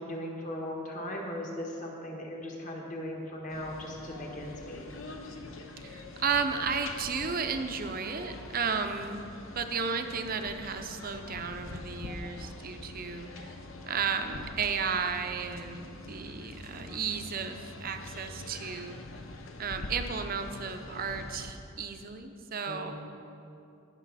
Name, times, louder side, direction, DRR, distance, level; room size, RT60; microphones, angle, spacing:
voice 1, 0.0-4.8 22.7-22.9, left 1 dB, 35° left, -1 dB, 1.5 m, -38 dB
sound 1, 3.5-21.5, left 2 dB, 70° left, 0.8 m, -44 dB
voice 2, 5.8-9.2 9.5-13.6 13.9-19.0 19.6-22.9, right 5 dB, 45° right, 7 dB, 0.7 m, -33 dB
18.0 x 6.3 x 4.1 m, 2.7 s
head